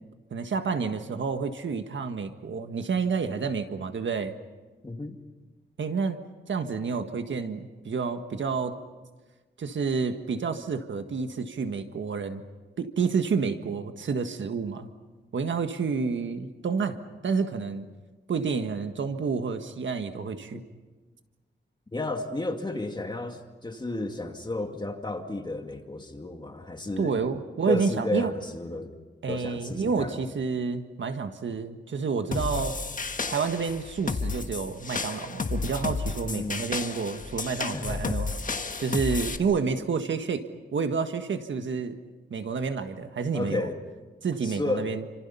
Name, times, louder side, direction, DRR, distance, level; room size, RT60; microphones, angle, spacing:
voice 1, 0.3-4.3 5.8-6.2 6.5-8.8 9.6-12.4 12.8-14.9 15.3-17.0 17.2-17.9 18.3-20.6 27.0-28.3 29.2-32.8 33.3-38.3 38.8-40.4 40.7-42.0 42.3-43.6 44.2-45.0, right 5 dB, 75° right, 7 dB, 1.6 m, -29 dB
voice 2, 4.8-5.2 20.5-20.6 21.9-27.2 27.7-29.0 29.3-30.2 36.2-36.7 37.7-38.2 43.3-43.8 44.4-44.9, left 2 dB, 25° left, 4 dB, 2.3 m, -32 dB
sound 1, 32.3-39.4, left 4 dB, 40° left, 1.4 m, -32 dB
29.5 x 26.5 x 5.6 m, 1.3 s
wide cardioid pair, 120°, 20 cm